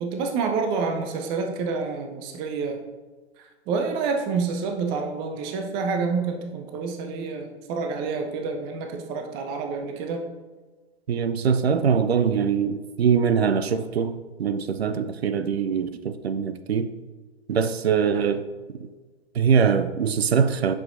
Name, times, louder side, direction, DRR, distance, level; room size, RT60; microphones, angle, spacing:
voice 1, 0.0-2.8 3.7-10.2, right 4 dB, 15° right, 4 dB, 0.4 m, -28 dB
voice 2, 11.1-16.9 17.5-18.4 18.8-18.9 19.3-20.7, right 6 dB, 70° right, 11 dB, 0.6 m, -23 dB
8.1 x 6.3 x 2.5 m, 1.3 s
figure-of-eight pair, 110°, 33 cm